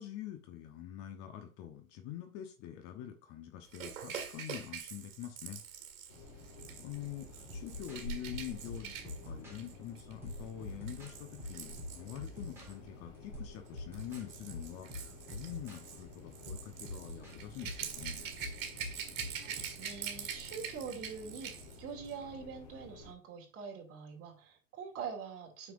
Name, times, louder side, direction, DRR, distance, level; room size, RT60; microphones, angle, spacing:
voice 1, 0.0-5.6 6.8-18.3, left 11 dB, 35° left, 6 dB, 1.1 m, -45 dB
Rattle / Rattle (instrument), 3.7-12.7 13.7-21.8 22.1-22.2, right 7 dB, 60° right, 2.0 m, -45 dB
sound 1, 6.1-23.1, left 1 dB, 50° left, 3.0 m, -51 dB
sound 2, 7.5-9.6 10.2-12.7 13.3-14.3 14.5-15.8 16.5-19.6, left 2 dB, 5° right, 3.1 m, -46 dB
voice 2, 19.4-25.7, right 6 dB, 30° right, 1 dB, 2.6 m, -44 dB
9.2 x 5.9 x 2.6 m, 0.34 s
hypercardioid pair, 105°, 43 cm